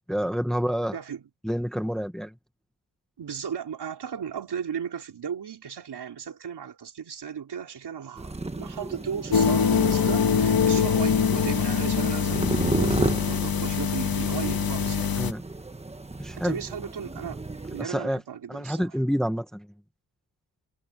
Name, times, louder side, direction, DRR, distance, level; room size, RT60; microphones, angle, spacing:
voice 1, 0.1-1.0 1.4-2.3 15.2-15.4 16.2-16.6 17.8-18.2 18.5-19.7, equal, ahead, 1.1 m, -28 dB
voice 2, 0.9-1.2 3.2-15.1 16.4-19.0, right 7 dB, 70° right, 3.6 m, -35 dB
sound 1, 8.2-17.8, right 2 dB, 15° right, 1.3 m, -33 dB
sound 2, 9.3-15.3, left 7 dB, 55° left, 1.6 m, -24 dB
wide cardioid pair, 150°, 41 cm